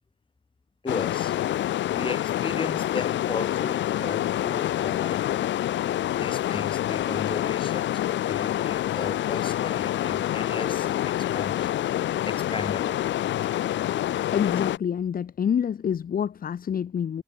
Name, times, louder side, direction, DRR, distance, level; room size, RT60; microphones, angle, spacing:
voice 1, 0.8-1.3 1.9-5.2 6.1-11.7 12.3-13.0, left 4 dB, 25° left, 3.6 m, -36 dB
sound 1, 0.9-14.8, left 12 dB, 70° left, 0.9 m, -27 dB
voice 2, 14.3-17.2, left 8 dB, 45° left, 1.2 m, -27 dB
cardioid pair, 90°, 20 cm